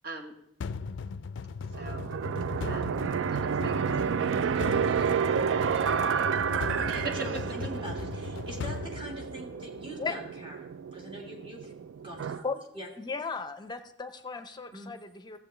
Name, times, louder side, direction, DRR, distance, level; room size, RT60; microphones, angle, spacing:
voice 1, 0.0-0.3 1.8-2.1 2.6-2.9 3.3-4.6 6.1-7.4, right 3 dB, 55° right, 2 dB, 1.4 m, -41 dB
sound 1, 0.6-9.8, left 5 dB, 80° left, 0.4 m, -38 dB
sound 2, 1.7-12.4, right 7 dB, 80° right, 0.3 m, -30 dB
voice 2, 6.5-11.7 12.0-12.4 12.7-12.9 14.7-14.9, equal, 30° right, -1 dB, 2.0 m, -43 dB
voice 3, 13.0-15.4, left 4 dB, 25° left, 9 dB, 0.6 m, -36 dB
15.5 x 7.6 x 3.3 m, 0.81 s
head